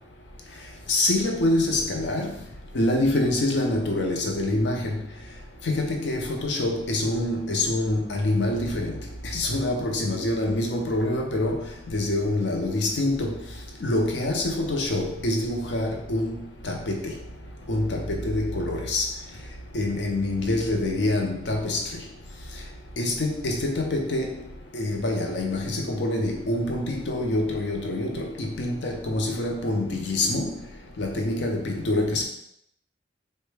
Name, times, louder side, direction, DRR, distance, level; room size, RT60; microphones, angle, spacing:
voice 1, 0.9-2.4 2.7-5.0 5.6-9.0 9.3-11.6 11.9-13.4 13.8-17.2 17.7-19.1 19.7-21.8 23.0-24.4 24.7-30.6 31.0-32.2, left 1 dB, 75° left, 2 dB, 0.6 m, -26 dB
3.6 x 2.1 x 3.2 m, 0.73 s
head